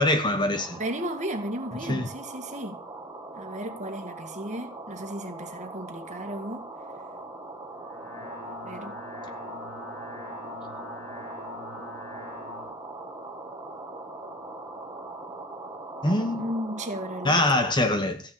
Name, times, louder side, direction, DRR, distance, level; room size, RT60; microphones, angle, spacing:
voice 1, 0.0-0.8 1.9-2.1 16.0-16.5 17.2-18.2, left 1 dB, 20° left, 1.2 m, -23 dB
sound 1, 0.6-17.8, right 2 dB, 15° right, 1.8 m, -41 dB
voice 2, 0.8-2.8 3.4-6.7 8.5-9.0 16.4-17.4, right 1 dB, 35° right, 2.1 m, -34 dB
sound 2, 7.8-12.7, left 3 dB, 85° left, 4.2 m, -42 dB
15.0 x 6.7 x 8.6 m
head